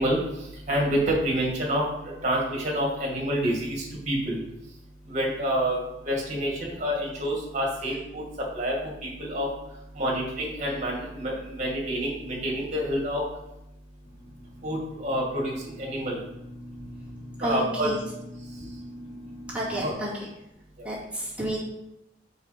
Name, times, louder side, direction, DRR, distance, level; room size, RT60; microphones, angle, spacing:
voice 1, 0.0-4.4 5.1-9.5 9.9-13.2 14.6-16.2 17.4-17.9 19.8-19.9 20.8-20.9, equal, 40° right, -2 dB, 2.0 m, -28 dB
sound 1, 14.0-19.9, equal, 75° left, 1.4 m, -43 dB
voice 2, 17.4-18.0 18.6-18.7 19.5-20.3 20.8-21.6, right 1 dB, 5° right, -8 dB, 2.1 m, -31 dB
4.8 x 4.8 x 5.0 m, 0.88 s
head